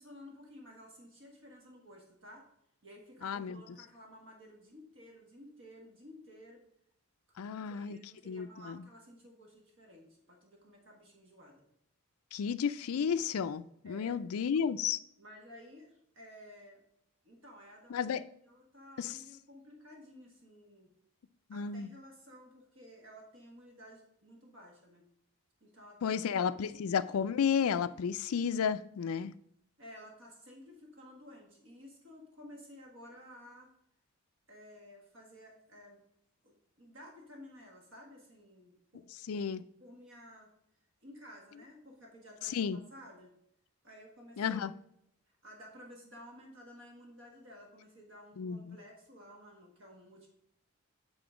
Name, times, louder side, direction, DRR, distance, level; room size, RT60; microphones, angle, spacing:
voice 1, 0.0-2.5 2.8-6.6 7.4-11.7 13.8-14.2 15.2-16.8 17.2-17.9 18.4-20.9 21.5-25.0 25.6-26.2 29.8-33.7 34.5-36.0 36.4-39.5 39.8-40.5 41.0-42.6 42.9-43.3 43.8-44.6 45.3-50.3, equal, 55° right, 1.5 m, -54 dB
voice 2, 3.2-3.6 7.4-8.0 8.3-8.8 12.3-15.0 17.9-18.2 19.0-19.1 21.5-21.9 26.0-29.3 39.3-39.6 42.5-42.8 44.4-44.7 48.4-48.8, left 7 dB, 80° left, 0.4 m, -32 dB
8.9 x 3.8 x 5.0 m
head